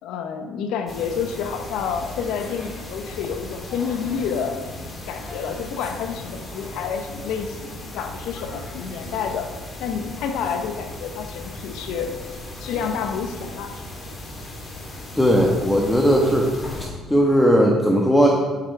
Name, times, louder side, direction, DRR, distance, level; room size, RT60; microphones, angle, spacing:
voice 1, 0.0-4.6 5.1-9.5 9.8-12.1 12.6-13.8, left 6 dB, 75° left, 6 dB, 1.0 m, -29 dB
sound 1, 0.9-16.9, left 1 dB, 35° left, 3.3 m, -37 dB
voice 2, 15.2-16.5 17.1-18.3, equal, 10° left, -1 dB, 1.4 m, -17 dB
12.0 x 8.9 x 3.5 m, 1.4 s
supercardioid pair, 70°, 0 cm